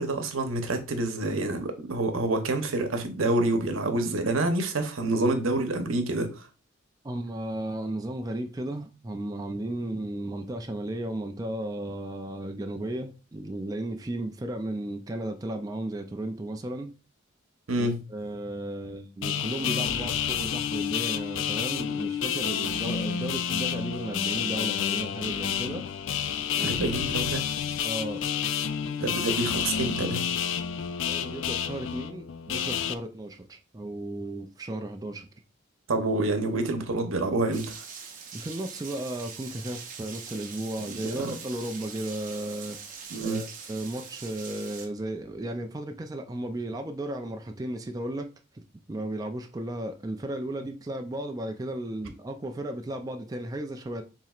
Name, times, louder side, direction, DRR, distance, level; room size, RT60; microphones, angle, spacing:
voice 1, 0.0-6.5 17.7-18.0 26.6-27.4 29.0-30.3 35.9-37.7 40.9-41.3 43.1-43.4, right 2 dB, 90° right, 0.9 m, -27 dB
voice 2, 7.0-16.9 17.8-25.8 26.5-26.7 27.8-28.3 31.1-35.3 38.3-42.8 43.2-48.3 48.5-48.6 48.9-54.0, right 1 dB, 20° right, 0.4 m, -34 dB
sound 1, 19.2-32.9, left 8 dB, 70° left, 0.3 m, -29 dB
Rain, 37.5-44.9, right 6 dB, 40° right, 0.8 m, -43 dB
7.2 x 3.0 x 2.4 m
head